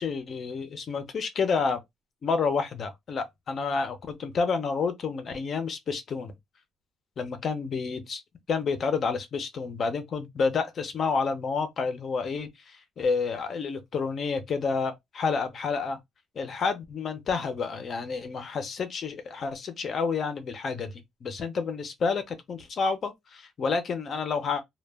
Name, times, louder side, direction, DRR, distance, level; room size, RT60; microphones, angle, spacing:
voice 1, 0.0-1.8 2.2-6.3 7.2-8.2 8.5-16.0 16.4-20.9 21.2-24.6, left 5 dB, 40° left, 0.5 m, -29 dB
2.1 x 2.1 x 3.3 m
cardioid pair, 140°, 0 cm